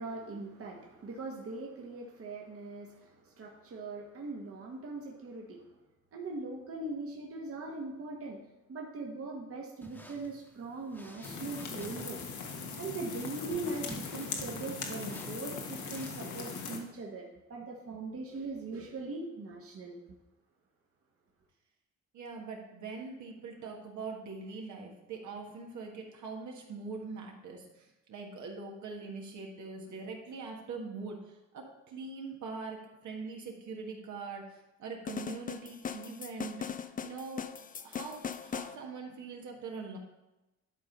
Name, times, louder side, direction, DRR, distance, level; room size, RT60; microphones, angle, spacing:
voice 1, 0.0-5.7 6.1-8.4 8.7-12.2 12.8-20.0, right 3 dB, 50° right, 0 dB, 1.4 m, -40 dB
sound 1, 9.8-16.3, left 1 dB, 5° left, 1.2 m, -53 dB
sound 2, 11.2-16.8, left 5 dB, 75° left, 1.4 m, -40 dB
voice 2, 22.1-36.7 37.0-37.4 37.8-40.0, right 4 dB, 75° right, 1 dB, 1.6 m, -42 dB
sound 3, 35.1-38.8, left 7 dB, 30° left, 0.4 m, -39 dB
11.5 x 3.8 x 5.3 m, 0.99 s
cardioid pair, 90°, 30 cm